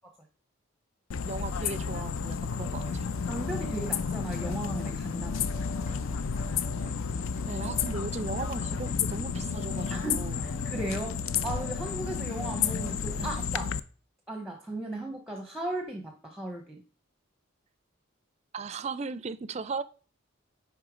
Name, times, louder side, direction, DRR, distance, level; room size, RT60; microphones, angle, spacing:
sound 1, 1.1-13.8, left 6 dB, 75° left, 0.4 m, -32 dB
voice 1, 1.3-3.1 7.4-10.4 13.2-13.4 18.5-19.8, right 4 dB, 30° right, 0.4 m, -37 dB
sound 2, 2.6-13.4, right 1 dB, 35° left, 1.5 m, -46 dB
voice 2, 3.3-5.6 9.9-13.7 14.3-16.8, right 1 dB, ahead, 0.7 m, -36 dB
9.8 x 3.5 x 4.9 m
head